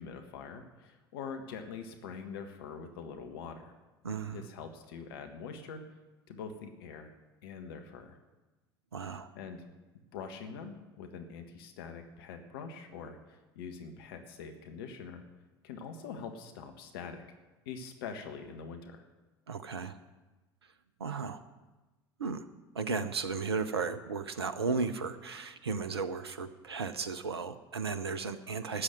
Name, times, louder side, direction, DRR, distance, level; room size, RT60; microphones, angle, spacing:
voice 1, 0.0-3.7 4.3-5.8 6.3-7.1 7.4-8.2 9.3-9.6 10.1-15.2 15.6-17.2 17.6-19.0, left 6 dB, 70° left, 6 dB, 1.6 m, -44 dB
voice 2, 4.0-4.5 8.9-9.3 19.5-20.0 21.0-21.4 22.2-22.5 22.7-28.8, right 5 dB, 85° right, 13 dB, 0.7 m, -35 dB
13.0 x 8.7 x 9.3 m, 1.2 s
figure-of-eight pair, 70°, 13 cm